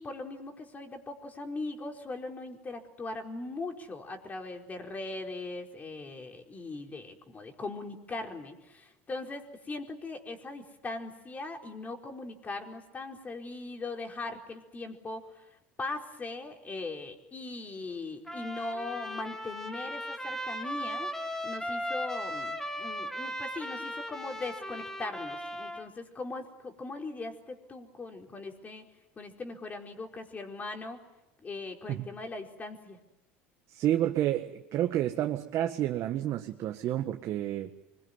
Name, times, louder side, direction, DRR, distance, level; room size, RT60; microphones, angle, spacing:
voice 1, 0.0-15.5 15.8-28.8 29.2-31.0 31.4-33.0, left 3 dB, 25° left, 4.7 m, -40 dB
Trumpet, 18.3-25.9, equal, 5° left, 2.9 m, -37 dB
voice 2, 33.7-37.7, right 12 dB, 55° right, 1.7 m, -30 dB
25.0 x 22.5 x 9.8 m
supercardioid pair, 95°, 6 cm